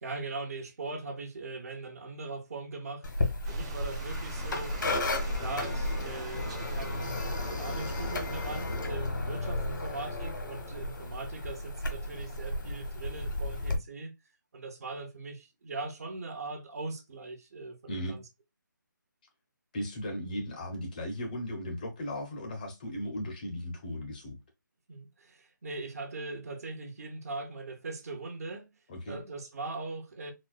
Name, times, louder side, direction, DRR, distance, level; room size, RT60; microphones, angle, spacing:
voice 1, 0.0-3.0 3.4-4.8 5.3-7.2 7.5-14.1 14.5-18.2 24.9-28.7 29.1-30.3, right 3 dB, 50° right, 0.9 m, -40 dB
sound 1, 3.0-13.8, left 2 dB, 70° left, 1.2 m, -33 dB
sound 2, 3.4-8.6, right 2 dB, 20° right, 0.7 m, -45 dB
voice 2, 17.9-18.2 19.7-24.4 28.9-29.2, equal, 25° left, 0.6 m, -36 dB
4.1 x 2.1 x 2.3 m
figure-of-eight pair, 160°, 11 cm